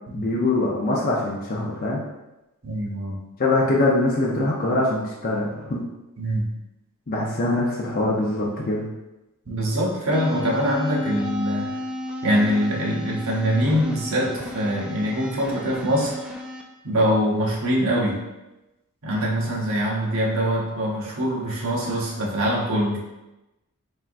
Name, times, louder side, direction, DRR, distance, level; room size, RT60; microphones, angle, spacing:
voice 1, 0.1-2.0 3.4-5.8 7.1-8.9, left 2 dB, 40° left, -5 dB, 0.6 m, -23 dB
voice 2, 2.6-3.2 6.2-6.5 9.5-11.8 12.2-16.1 16.8-18.2 19.0-23.0, equal, 65° right, -3 dB, 0.9 m, -23 dB
sound 1, 10.1-16.6, left 1 dB, 5° right, 0.3 m, -33 dB
4.3 x 3.5 x 2.5 m, 0.99 s
head